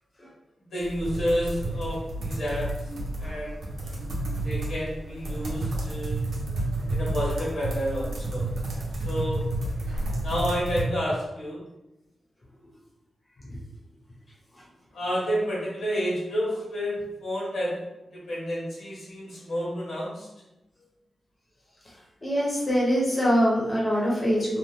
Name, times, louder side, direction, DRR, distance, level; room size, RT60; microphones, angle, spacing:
voice 1, 0.6-2.7 3.2-3.6 4.4-6.2 6.9-8.4 9.0-9.4 10.2-11.6 14.9-17.8 18.1-20.3, equal, 80° left, -6 dB, 1.3 m, -30 dB
sound 1, 0.8-10.8, right 2 dB, 70° right, 0.7 m, -31 dB
voice 2, 22.2-24.6, equal, 25° left, -6 dB, 0.8 m, -24 dB
2.8 x 2.0 x 3.3 m, 0.96 s
wide cardioid pair, 110°, 0 cm